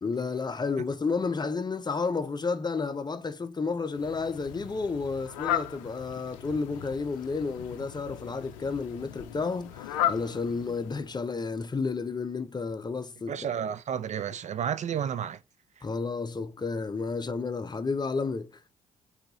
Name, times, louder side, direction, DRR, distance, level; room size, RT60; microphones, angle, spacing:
voice 1, 0.0-13.4 15.8-18.5, left 4 dB, 25° left, 0.6 m, -31 dB
Fowl, 3.9-11.3, left 11 dB, 80° left, 0.4 m, -36 dB
voice 2, 13.3-15.4, right 8 dB, 45° right, 0.4 m, -31 dB
3.9 x 2.8 x 4.1 m
hypercardioid pair, 45°, 17 cm